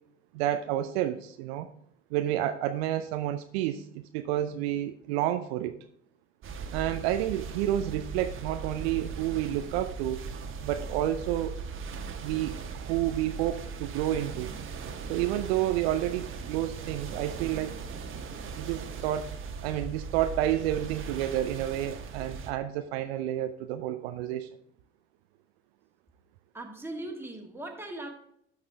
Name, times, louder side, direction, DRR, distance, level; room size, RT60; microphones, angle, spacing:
voice 1, 0.3-1.7 2.1-5.8 6.7-10.2 10.6-11.5 12.2-14.5 15.1-17.8 18.5-19.3 19.6-24.5, right 12 dB, 60° right, 9 dB, 0.6 m, -30 dB
sound 1, 6.4-22.5, right 5 dB, 35° right, 1.2 m, -39 dB
voice 2, 26.5-28.1, right 2 dB, 5° right, 1 dB, 1.9 m, -39 dB
12.5 x 4.9 x 3.4 m, 0.71 s
figure-of-eight pair, 60°, 35 cm